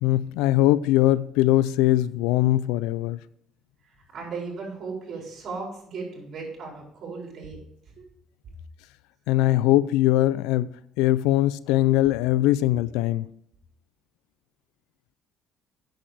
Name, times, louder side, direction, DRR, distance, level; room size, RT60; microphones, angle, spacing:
voice 1, 0.0-3.2 9.3-10.7 11.0-13.3, left 15 dB, 90° left, 0.4 m, -21 dB
voice 2, 4.1-7.6, right 4 dB, 50° right, 4.7 m, -36 dB
8.8 x 7.2 x 4.9 m
cardioid pair, 95°, 0 cm